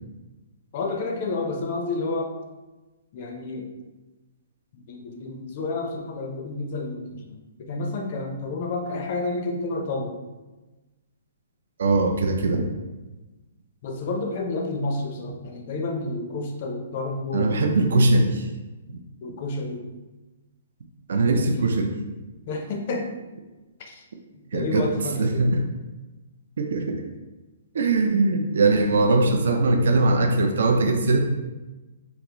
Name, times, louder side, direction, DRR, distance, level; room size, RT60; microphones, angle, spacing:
voice 1, 0.7-2.3 3.1-3.7 4.7-10.2 13.8-18.1 19.2-19.8 21.3-21.8 22.5-23.1 23.8-24.0 24.5-25.4, left 2 dB, 35° left, 3 dB, 0.4 m, -30 dB
voice 2, 11.8-12.6 17.3-18.5 18.9-19.0 21.1-21.9 24.5-24.9 25.2-25.6 26.6-27.0 27.7-31.2, right 2 dB, 65° right, 3 dB, 0.4 m, -21 dB
3.5 x 2.3 x 2.8 m, 1.1 s
hypercardioid pair, 175°, 0 cm